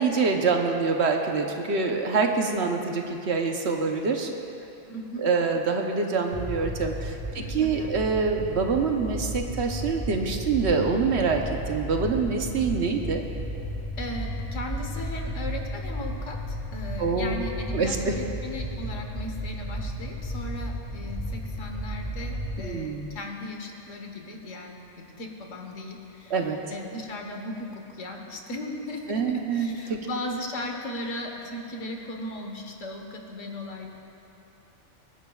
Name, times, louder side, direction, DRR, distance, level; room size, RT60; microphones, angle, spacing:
voice 1, 0.0-4.3 5.2-13.2 17.0-17.4 17.7-18.2 22.6-23.1 26.3-26.6 29.1-30.1, right 4 dB, 65° right, 3 dB, 1.1 m, -25 dB
voice 2, 4.9-5.2 7.4-7.9 14.0-26.4 26.7-33.9, left 1 dB, 85° left, 2 dB, 1.6 m, -37 dB
sound 1, 6.3-22.7, equal, 10° left, 1.9 m, -34 dB
24.5 x 10.0 x 2.4 m, 3.0 s
omnidirectional pair, 1.3 m